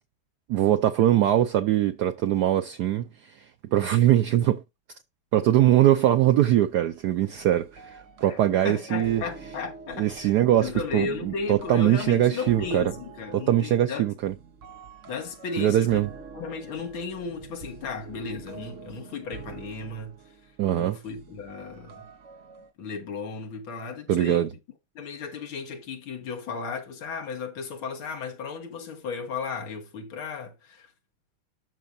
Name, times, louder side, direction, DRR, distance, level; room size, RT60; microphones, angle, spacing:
voice 1, 0.5-3.3 3.7-4.6 5.3-9.2 10.0-12.9 13.3-14.3 15.6-16.1 20.6-21.0 24.1-24.5, right 12 dB, 85° right, 0.8 m, -22 dB
sound 1, 6.5-22.7, right 5 dB, 55° right, 0.9 m, -46 dB
voice 2, 8.3-14.1 15.1-16.1 16.3-20.2 20.7-22.1 22.8-24.4 25.0-30.9, left 5 dB, 70° left, 2.3 m, -35 dB
12.5 x 4.7 x 2.6 m
omnidirectional pair, 2.3 m